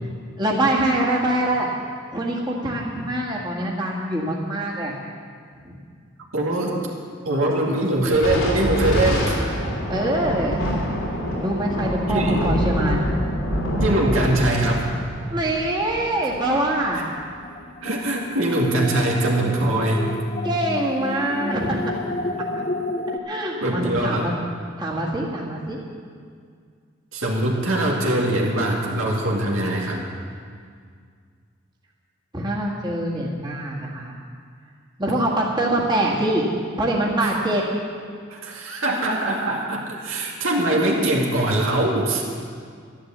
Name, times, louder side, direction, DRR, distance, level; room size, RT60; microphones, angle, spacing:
voice 1, 0.4-1.7 2.1-5.0 5.6-5.8 9.9-10.6 11.4-13.1 15.3-17.0 20.4-21.8 23.3-24.3 24.8-25.8 32.3-34.1 35.0-36.4 36.8-37.6, right 1 dB, 20° right, -4 dB, 1.9 m, -24 dB
voice 2, 6.3-6.8 7.2-9.4 12.1-12.4 13.8-14.8 17.8-20.1 23.6-24.3 27.1-30.0 37.2-37.4 38.3-42.2, right 1 dB, 85° right, -1 dB, 2.3 m, -22 dB
Thunder, 8.1-16.9, equal, 90° left, 3.4 m, -25 dB
sound 1, 16.4-23.2, left 2 dB, 35° left, 0.5 m, -32 dB
12.0 x 11.5 x 7.4 m, 2.1 s
head